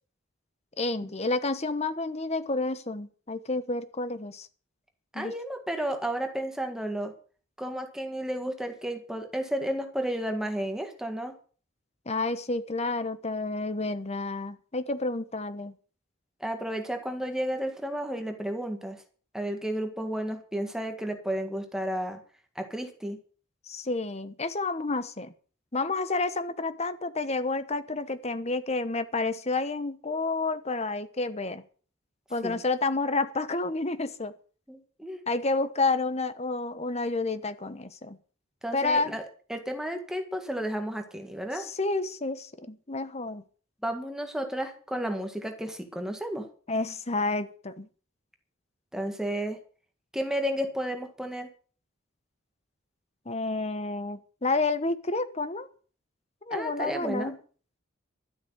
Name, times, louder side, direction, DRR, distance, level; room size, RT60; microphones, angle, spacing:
voice 1, 0.8-4.5 5.1-5.3 12.1-15.7 23.7-25.3 25.7-31.6 32.3-34.3 35.3-38.2 38.7-39.2 41.6-43.4 46.7-47.9 53.3-55.7 56.5-57.4, left 3 dB, 30° left, 12 dB, 1.1 m, -30 dB
voice 2, 5.1-7.1 7.6-11.3 16.4-19.0 19.3-22.2 22.6-23.2 32.4-32.6 34.7-35.2 38.6-39.2 39.5-41.7 43.8-46.5 48.9-49.6 50.1-51.5 56.5-57.3, right 1 dB, 5° right, 5 dB, 1.8 m, -32 dB
13.0 x 8.3 x 8.1 m, 0.42 s
head